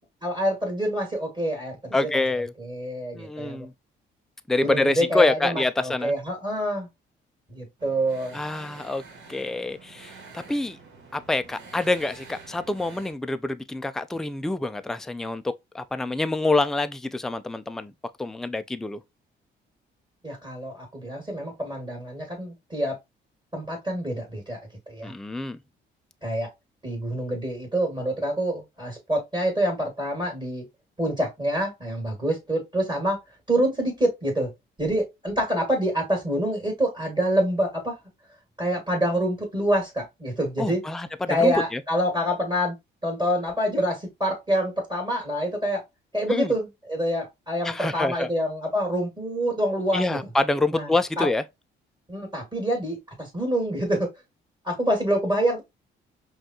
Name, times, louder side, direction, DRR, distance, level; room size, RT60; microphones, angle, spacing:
voice 1, 0.2-2.2 2.6-3.7 4.6-6.9 7.5-8.4 20.2-23.0 23.5-24.6 24.9-25.1 26.2-26.5 26.8-30.6 31.0-33.2 33.5-34.5 34.8-38.0 38.6-40.8 41.3-42.8 43.0-45.8 46.1-50.2 50.7-51.3 52.1-54.1 54.6-55.6, equal, 20° right, 2.1 m, -26 dB
voice 2, 1.9-2.5 3.1-3.7 4.5-6.1 8.3-9.0 9.3-10.8 11.1-17.9 18.2-19.0 25.0-25.6 40.6-41.8 46.3-46.5 47.6-48.3 49.9-51.4, left 2 dB, ahead, 0.3 m, -26 dB
sound 1, 7.8-13.1, right 4 dB, 70° right, 1.4 m, -47 dB
5.2 x 2.4 x 2.8 m
cardioid pair, 90°, 20 cm